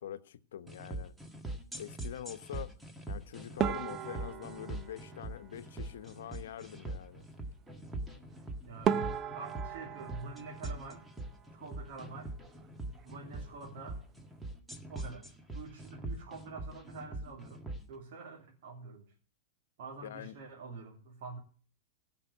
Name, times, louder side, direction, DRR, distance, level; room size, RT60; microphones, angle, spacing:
voice 1, 0.0-1.1 1.8-2.8 3.1-7.3 20.0-20.4, left 10 dB, 80° left, 0.9 m, -45 dB
sound 1, 0.7-17.8, right 2 dB, 10° right, 1.7 m, -42 dB
sound 2, 3.6-6.1 8.3-8.4 8.8-11.6 11.9-12.7 13.0-13.2 13.5-13.6 14.2-14.5, right 8 dB, 30° right, 0.7 m, -37 dB
sound 3, 6.6-14.5, left 13 dB, 40° left, 3.2 m, -62 dB
voice 2, 8.6-11.0 11.5-12.3 13.0-14.0 14.9-19.1 19.8-21.4, right 4 dB, 70° right, 3.0 m, -47 dB
16.5 x 5.8 x 7.2 m
hypercardioid pair, 125°, 0 cm